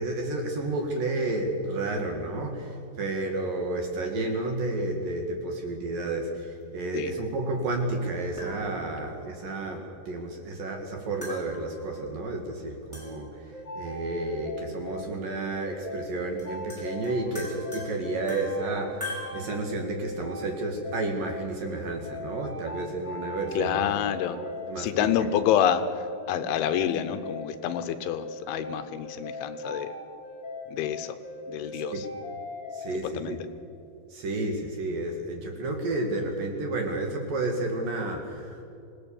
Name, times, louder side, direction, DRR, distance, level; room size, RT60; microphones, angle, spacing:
voice 1, 0.0-19.1 19.3-23.9 24.3-24.9 25.2-25.3 31.9-32.0 32.7-33.4 34.1-38.6, right 2 dB, 55° right, 3 dB, 3.0 m, -31 dB
sound 1, 7.8-7.9 8.4-9.1 11.2-12.1 12.9-13.5 14.9-15.0 16.1-16.2 16.4-19.3, left 2 dB, 5° right, 5.4 m, -41 dB
sound 2, 13.5-32.9, left 1 dB, 30° left, 4.7 m, -40 dB
voice 2, 23.6-24.4 24.8-30.0 30.7-31.2 31.5-32.1 33.1-33.4, left 10 dB, 80° left, 9 dB, 3.2 m, -27 dB
26.5 x 18.0 x 7.1 m, 2.6 s
omnidirectional pair, 5.6 m